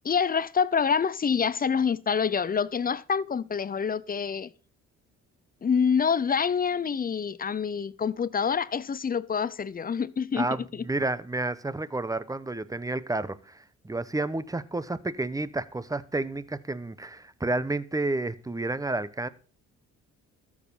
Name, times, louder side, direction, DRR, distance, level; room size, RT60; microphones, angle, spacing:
voice 1, 0.0-4.5 5.6-10.8, left 6 dB, 30° left, 0.6 m, -26 dB
voice 2, 10.4-19.3, right 2 dB, 10° right, 0.9 m, -30 dB
13.5 x 7.3 x 5.5 m
cardioid pair, 90°, 30 cm